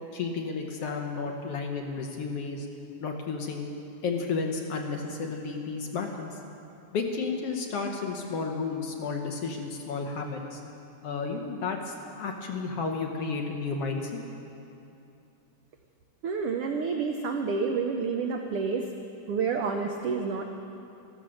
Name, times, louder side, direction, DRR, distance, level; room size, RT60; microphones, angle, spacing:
voice 1, 0.1-2.7 3.0-3.7 4.0-6.4 6.9-10.6 11.0-14.1, left 4 dB, 65° left, 2 dB, 1.7 m, -32 dB
voice 2, 16.2-18.9 19.3-20.4, right 5 dB, 80° right, 4 dB, 1.3 m, -29 dB
14.5 x 14.0 x 6.4 m, 2.7 s
omnidirectional pair, 3.5 m